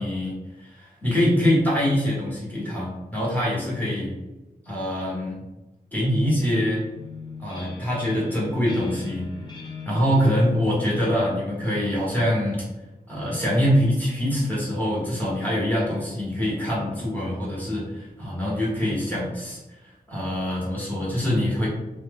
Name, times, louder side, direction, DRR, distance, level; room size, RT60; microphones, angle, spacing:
voice 1, 0.0-4.1 4.6-5.4 5.9-6.8 7.4-9.3 9.8-12.6 13.1-21.7, equal, 10° left, -7 dB, 1.4 m, -24 dB
sound 1, 6.9-12.5, left 4 dB, 25° left, 0.6 m, -41 dB
2.6 x 2.1 x 3.6 m, 1.1 s
wide cardioid pair, 85°, 17 cm